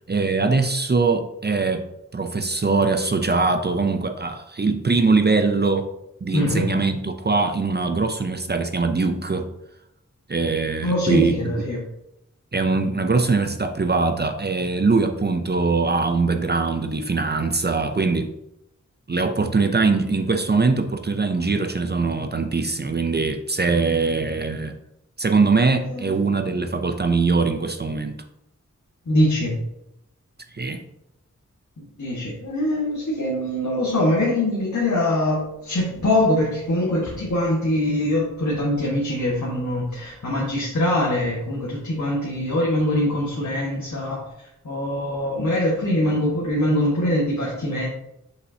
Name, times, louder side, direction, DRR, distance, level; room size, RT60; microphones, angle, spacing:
voice 1, 0.1-1.9 2.1-5.9 6.2-9.5 10.3-11.5 12.5-18.3 19.1-24.8 25.2-28.2 30.5-30.8, right 4 dB, 35° right, 6 dB, 0.5 m, -22 dB
voice 2, 6.3-6.7 10.8-11.8 25.9-26.0 29.1-29.5 32.0-44.2 44.6-47.9, left 1 dB, 70° left, -5 dB, 1.5 m, -23 dB
6.4 x 5.5 x 2.8 m, 0.83 s
wide cardioid pair, 65°, 30 cm